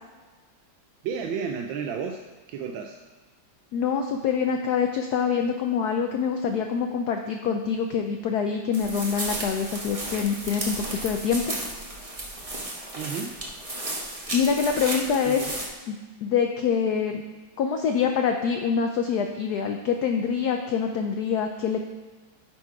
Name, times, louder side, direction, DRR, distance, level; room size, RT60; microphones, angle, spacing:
voice 1, 1.0-2.2 2.5-3.0 13.0-13.4 15.2-15.5, right 6 dB, 75° right, 3 dB, 1.2 m, -32 dB
voice 2, 3.7-11.6 14.3-15.4 15.9-17.2 17.6-21.8, left 6 dB, 85° left, 5 dB, 0.8 m, -25 dB
sound 1, 8.7-15.7, right 1 dB, 25° right, 0.8 m, -34 dB
12.0 x 4.4 x 4.7 m, 1.3 s
omnidirectional pair, 2.3 m